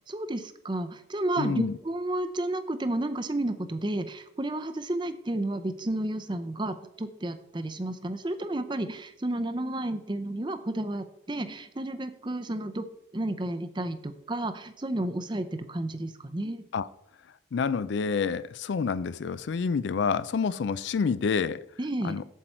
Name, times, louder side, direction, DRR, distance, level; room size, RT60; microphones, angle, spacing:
voice 1, 0.1-12.9 13.1-16.6 21.8-22.2, right 1 dB, 25° right, 0.6 m, -32 dB
voice 2, 1.4-1.8 16.7-16.9 17.5-21.6 22.0-22.3, left 5 dB, 70° left, 0.4 m, -28 dB
8.1 x 7.6 x 4.4 m
head